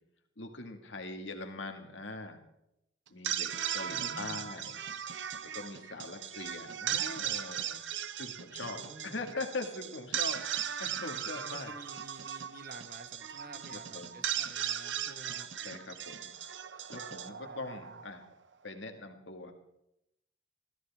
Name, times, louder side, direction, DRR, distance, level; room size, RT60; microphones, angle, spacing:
voice 1, 0.4-2.4 3.1-4.8 5.4-11.7 13.7-14.2 15.6-16.3 16.9-18.2 18.6-19.5, left 3 dB, 70° left, 4 dB, 2.0 m, -42 dB
sound 1, 3.1-18.3, right 9 dB, 70° right, 0.8 m, -37 dB
voice 2, 3.9-4.5 8.5-9.3 11.3-15.5 17.2-18.0, right 2 dB, 50° right, 7 dB, 1.5 m, -51 dB
21.5 x 14.5 x 3.6 m, 0.83 s
head